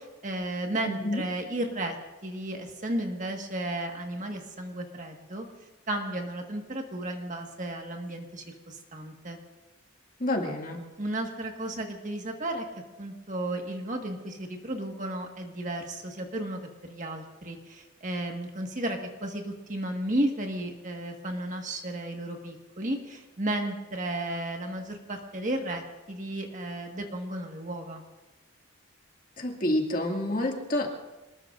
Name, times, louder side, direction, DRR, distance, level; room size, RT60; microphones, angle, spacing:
voice 1, 0.0-1.9 2.2-5.4 5.9-9.4 11.0-12.6 13.0-25.8 26.1-28.0, right 1 dB, 35° right, 3 dB, 1.6 m, -33 dB
voice 2, 10.2-10.8 29.4-30.9, left 1 dB, 40° left, 1 dB, 2.1 m, -28 dB
27.0 x 20.0 x 2.6 m, 1.1 s
head